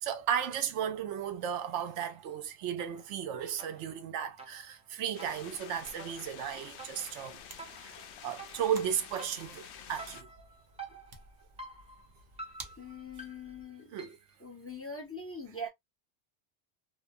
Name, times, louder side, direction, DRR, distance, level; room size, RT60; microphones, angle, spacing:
voice 1, 0.0-7.4 7.8-10.3 13.9-14.2, right 8 dB, 85° right, 0.9 m, -35 dB
sound 1, 2.0-2.5 2.8-14.4, right 2 dB, 10° right, 0.5 m, -50 dB
sound 2, 5.1-10.2, left 8 dB, 75° left, 0.8 m, -49 dB
sound 3, 5.2-13.6, right 3 dB, 45° right, 0.7 m, -55 dB
voice 2, 12.8-13.9 14.4-15.7, left 1 dB, 15° left, 0.9 m, -42 dB
2.9 x 2.2 x 2.5 m
omnidirectional pair, 1.2 m